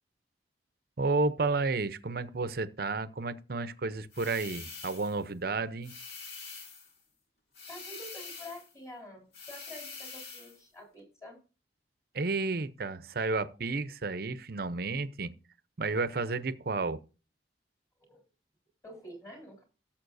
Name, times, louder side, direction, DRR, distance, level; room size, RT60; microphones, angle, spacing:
voice 1, 1.0-6.0 12.1-15.3 15.8-17.0, right 3 dB, 55° right, 0.7 m, -31 dB
sound 1, 4.1-5.2 5.8-6.9 7.5-8.7 9.3-10.6, left 4 dB, 65° left, 2.3 m, -45 dB
voice 2, 7.7-11.4 18.0-18.2 18.8-19.6, left 1 dB, 20° left, 4.0 m, -48 dB
17.5 x 7.2 x 2.6 m
head